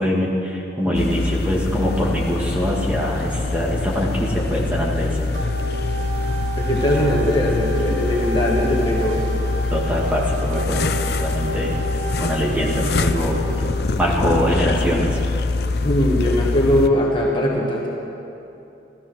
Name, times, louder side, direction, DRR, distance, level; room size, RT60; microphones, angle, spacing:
voice 1, 0.0-5.2 9.7-11.7 12.2-13.4 14.0-15.2, equal, 10° right, -4 dB, 2.0 m, -23 dB
sound 1, 0.9-16.9, left 3 dB, 55° left, 0.6 m, -24 dB
sound 2, 5.3-13.7, right 2 dB, 80° right, 3.1 m, -32 dB
voice 2, 6.6-9.3 15.8-17.9, left 1 dB, 25° left, -3 dB, 1.5 m, -20 dB
15.0 x 13.5 x 6.2 m, 2.8 s
head